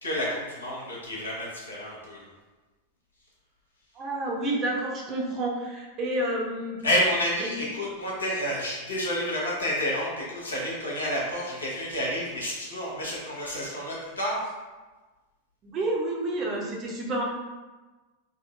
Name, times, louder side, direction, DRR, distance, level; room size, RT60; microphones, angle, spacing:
voice 1, 0.0-2.3 6.8-14.5, left 1 dB, 75° left, -5 dB, 0.8 m, -29 dB
voice 2, 4.0-6.8 7.4-7.6 15.6-17.2, right 1 dB, 30° right, -2 dB, 0.6 m, -29 dB
3.6 x 2.1 x 2.4 m, 1.2 s
figure-of-eight pair, 90°, 0 cm